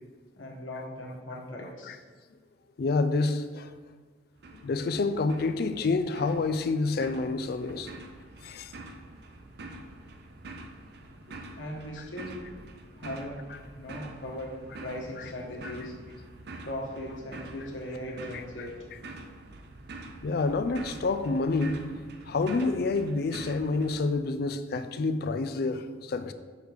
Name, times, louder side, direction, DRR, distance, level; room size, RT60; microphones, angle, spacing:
voice 1, 0.3-2.0 11.6-12.4 13.0-13.4 13.7-14.5 14.8-15.9 16.6-18.8, left 1 dB, 80° left, -2 dB, 1.4 m, -38 dB
voice 2, 2.8-3.7 4.6-7.9 8.4-8.7 20.2-21.9 22.3-26.3, left 3 dB, 50° left, 10 dB, 0.4 m, -28 dB
sound 1, 4.4-24.0, right 2 dB, 55° right, 0.5 m, -46 dB
6.4 x 3.2 x 5.1 m, 1.5 s
head